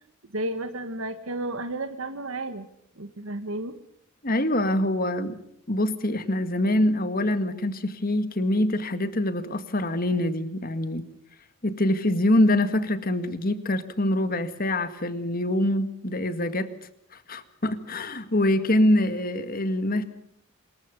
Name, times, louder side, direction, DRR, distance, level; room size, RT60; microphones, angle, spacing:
voice 1, 0.3-2.7 3.0-3.7, right 2 dB, 75° right, 8 dB, 1.5 m, -32 dB
voice 2, 4.2-5.4 5.7-11.0 11.6-16.7 17.1-20.0, left 1 dB, 45° left, 11 dB, 1.9 m, -24 dB
26.5 x 22.0 x 5.3 m, 0.72 s
head